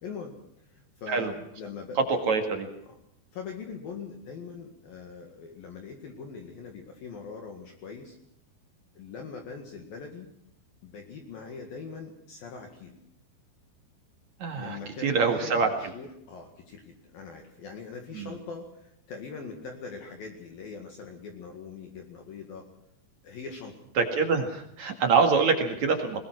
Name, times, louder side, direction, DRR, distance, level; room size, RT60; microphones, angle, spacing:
voice 1, 0.0-2.2 2.9-3.0 3.3-8.2 8.9-10.3 10.8-13.0 14.6-22.7 23.2-23.7, left 5 dB, 55° left, 3 dB, 3.4 m, -42 dB
voice 2, 2.1-2.7 14.4-15.7 18.1-18.3 24.0-26.2, right 5 dB, 50° right, 4 dB, 2.5 m, -25 dB
21.0 x 20.5 x 6.1 m, 0.73 s
omnidirectional pair, 5.5 m